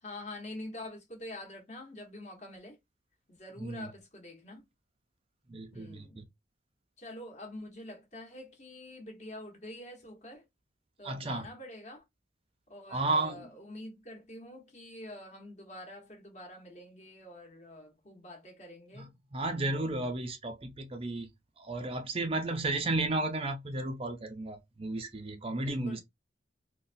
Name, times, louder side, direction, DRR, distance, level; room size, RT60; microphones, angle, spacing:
voice 1, 0.0-2.8 3.3-4.6 5.7-6.2 7.0-10.4 11.0-12.0 12.7-19.1 25.6-26.0, left 1 dB, 40° left, 1.2 m, -46 dB
voice 2, 3.6-3.9 5.5-6.2 11.0-11.5 12.9-13.5 19.0-19.1 19.3-21.3 21.6-26.0, right 2 dB, 30° right, 0.5 m, -33 dB
3.9 x 2.2 x 2.6 m
head